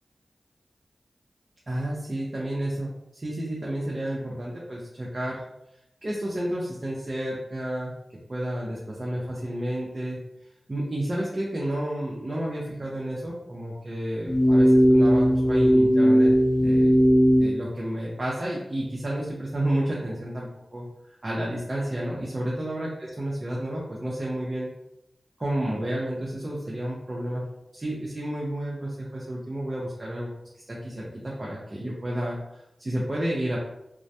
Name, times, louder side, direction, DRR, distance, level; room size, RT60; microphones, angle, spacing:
voice 1, 1.7-5.4 6.0-7.9 8.3-10.2 10.7-16.3 16.6-16.9 17.4-20.9 21.2-22.9 23.2-24.7 25.4-27.5 27.7-30.3 30.7-33.6, right 1 dB, 40° right, -5 dB, 0.6 m, -31 dB
sound 1, 14.2-17.5, equal, 60° left, 0.8 m, -18 dB
2.2 x 2.1 x 2.7 m, 0.86 s
cardioid pair, 45°, 0 cm